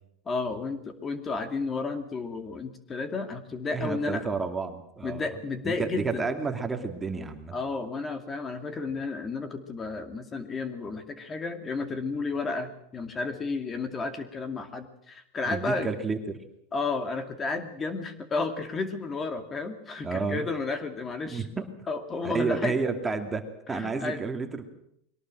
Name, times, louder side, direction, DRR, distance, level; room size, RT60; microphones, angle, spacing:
voice 1, 0.3-4.3 5.0-6.3 7.5-15.9 16.7-21.5 21.9-22.8 23.7-24.2, left 3 dB, 25° left, 8 dB, 2.4 m, -32 dB
voice 2, 3.7-5.3 5.6-7.5 15.5-16.2 20.0-20.5 21.3-21.5 22.2-24.7, right 4 dB, 15° right, 6 dB, 2.5 m, -30 dB
22.5 x 18.0 x 7.6 m, 0.73 s
supercardioid pair, 120°, 0 cm